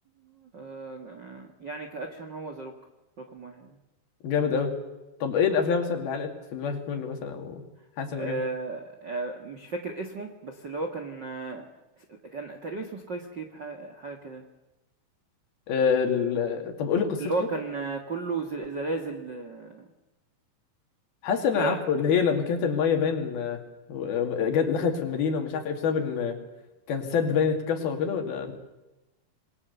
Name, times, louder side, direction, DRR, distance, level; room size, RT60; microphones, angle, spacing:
voice 1, 0.2-2.8 3.2-3.8 8.2-11.7 12.0-14.4 17.2-19.9 21.5-21.8, right 3 dB, 50° right, 4 dB, 1.4 m, -34 dB
voice 2, 4.2-4.7 5.2-7.6 8.0-8.4 15.7-17.2 21.2-23.6 23.9-26.4 26.9-28.5, left 6 dB, 65° left, 4 dB, 4.2 m, -26 dB
26.5 x 21.5 x 6.9 m, 1.0 s
omnidirectional pair, 4.7 m